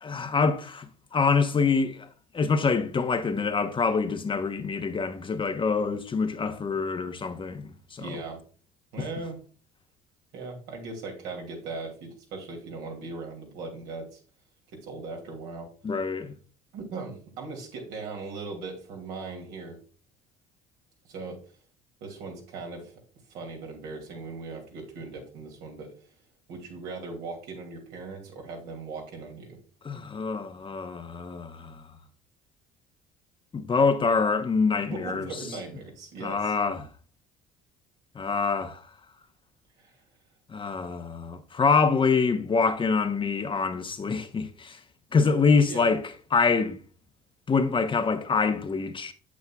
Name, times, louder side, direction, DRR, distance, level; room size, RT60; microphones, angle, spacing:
voice 1, 0.0-2.1 2.3-8.2 15.8-16.3 29.8-31.8 33.5-35.4 36.2-36.9 38.1-38.9 40.5-44.8 45.1-46.0 46.3-46.8 47.5-49.1, left 4 dB, 30° left, 0.9 m, -25 dB
voice 2, 8.0-8.4 8.9-9.4 10.3-14.2 14.7-15.7 16.7-19.8 21.1-21.4 22.0-22.9 23.3-25.9 26.5-29.6 34.9-36.5 39.8-40.0 45.7-45.9, right 3 dB, 75° right, 2.6 m, -39 dB
8.3 x 7.4 x 2.3 m
hypercardioid pair, 70°, 17 cm